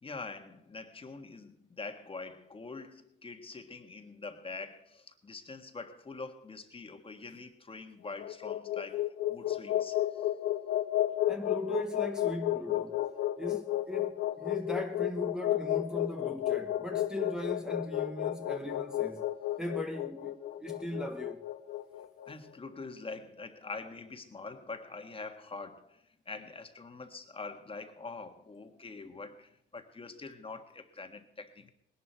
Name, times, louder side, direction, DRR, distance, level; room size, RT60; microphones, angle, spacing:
voice 1, 0.0-10.3 22.3-31.7, left 3 dB, 25° left, 1.5 m, -44 dB
sound 1, 8.1-22.3, left 13 dB, 85° left, 1.1 m, -32 dB
voice 2, 11.3-13.0 13.4-19.3 19.6-21.4, equal, 5° right, 1.2 m, -39 dB
19.5 x 11.0 x 4.5 m
cardioid pair, 90°, 20 cm